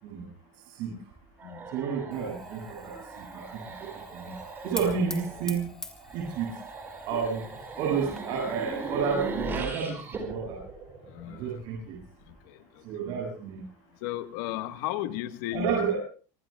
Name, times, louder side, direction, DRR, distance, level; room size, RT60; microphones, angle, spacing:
sound 1, 1.4-11.6, right 3 dB, 20° right, 4.7 m, -39 dB
voice 1, 1.7-2.9 3.3-3.6 4.1-4.3 4.6-5.7 6.1-6.5 7.1-7.5 7.8-10.6 11.3-12.0 12.9-13.6 15.5-16.0, right 6 dB, 50° right, 1 dB, 7.5 m, -30 dB
Fire, 2.1-9.5, left 2 dB, 5° left, 2.1 m, -45 dB
voice 2, 14.0-15.7, left 14 dB, 70° left, 9 dB, 1.4 m, -33 dB
25.0 x 24.5 x 2.3 m, 0.38 s
cardioid pair, 175°, 10 cm